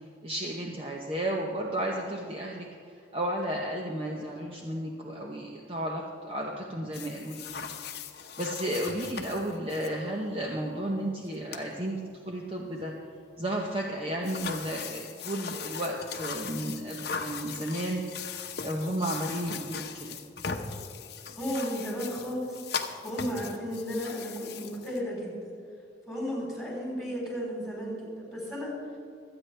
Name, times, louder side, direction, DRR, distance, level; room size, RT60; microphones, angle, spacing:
voice 1, 0.2-7.6 8.4-12.9 13.4-18.0 18.6-20.2, right 1 dB, 30° right, -1 dB, 0.9 m, -33 dB
sound 1, 6.9-9.9 11.2-11.3 11.5-11.7 14.2-25.0, left 6 dB, 55° left, 0.8 m, -39 dB
voice 2, 21.4-22.6 23.0-25.5 26.1-28.8, equal, ahead, -5 dB, 4.1 m, -34 dB
25.0 x 9.0 x 3.4 m, 2.3 s
head